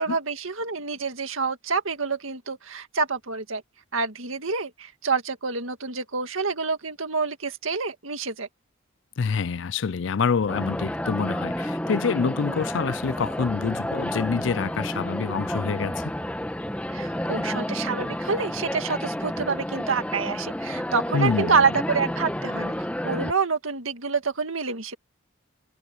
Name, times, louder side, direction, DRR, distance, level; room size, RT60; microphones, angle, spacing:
voice 1, 0.0-3.6 3.9-8.5 16.9-22.7 23.0-24.9, right 5 dB, 80° right, 2.0 m, -27 dB
voice 2, 9.2-16.1 21.1-21.6, left 5 dB, 65° left, 0.4 m, -26 dB
sound 1, 10.5-23.3, equal, 5° left, 1.1 m, -30 dB
head